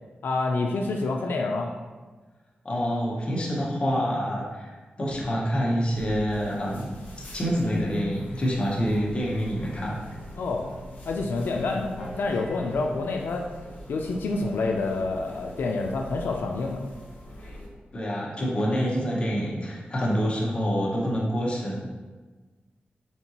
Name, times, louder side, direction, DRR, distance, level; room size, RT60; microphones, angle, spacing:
voice 1, 0.2-1.7 10.4-10.7 11.1-13.5 13.9-16.8, left 3 dB, 90° left, 1 dB, 0.4 m, -27 dB
voice 2, 2.6-4.7 5.0-7.0 7.3-10.2 17.9-21.8, equal, 30° left, -4 dB, 0.9 m, -27 dB
sound 1, 5.9-17.7, equal, 65° left, 1.1 m, -44 dB
sound 2, 8.8-12.7, left 1 dB, 15° right, 0.8 m, -45 dB
4.3 x 3.6 x 2.9 m, 1.3 s
wide cardioid pair, 175°, 3 cm